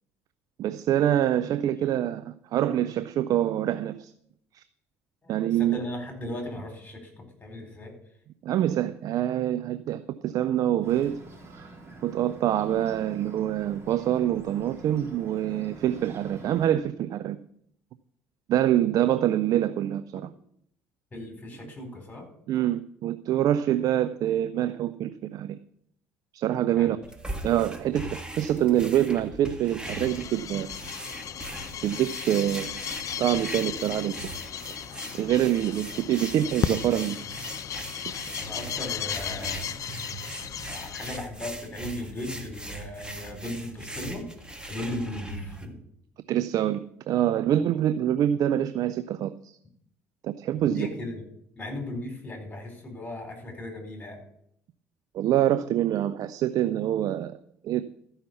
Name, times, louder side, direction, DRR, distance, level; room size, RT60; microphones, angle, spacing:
voice 1, 0.6-4.1 4.5-4.6 5.3-5.8 8.4-11.2 11.5-11.7 12.0-17.4 18.5-20.3 22.5-25.6 26.3-27.0 27.4-30.7 31.8-32.8 33.2-34.2 35.2-37.2 46.3-49.5 50.2-50.9 55.1-57.4 57.6-57.8, right 11 dB, 55° right, 12 dB, 0.5 m, -25 dB
voice 2, 5.6-7.9 21.1-22.3 26.7-27.0 38.4-39.7 40.7-44.3 44.7-45.7 50.6-51.3 51.6-54.2, left 1 dB, 20° left, 4 dB, 4.6 m, -37 dB
Bird, 10.8-16.7, right 2 dB, 35° right, 3.8 m, -46 dB
sound 1, 27.0-45.7, right 1 dB, 10° right, 1.9 m, -40 dB
sound 2, 29.8-41.2, left 9 dB, 50° left, 0.6 m, -35 dB
13.5 x 5.7 x 6.9 m, 0.71 s
hypercardioid pair, 60°, 7 cm